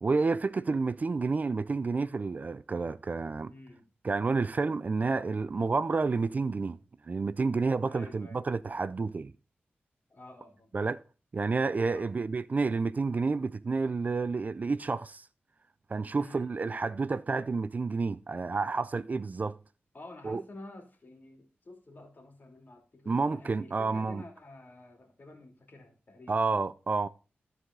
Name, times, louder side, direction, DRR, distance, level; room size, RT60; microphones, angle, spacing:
voice 1, 0.0-3.5 4.0-6.8 7.0-9.3 10.7-11.0 11.3-15.3 15.9-19.6 20.2-20.4 23.1-24.2 26.3-27.1, right 4 dB, 40° right, 0.4 m, -30 dB
voice 2, 3.5-3.9 7.8-8.4 10.1-10.7 11.9-12.1 16.2-16.5 19.9-26.4, left 2 dB, 50° left, 2.9 m, -50 dB
13.5 x 4.8 x 3.7 m
wide cardioid pair, 85°, 4 cm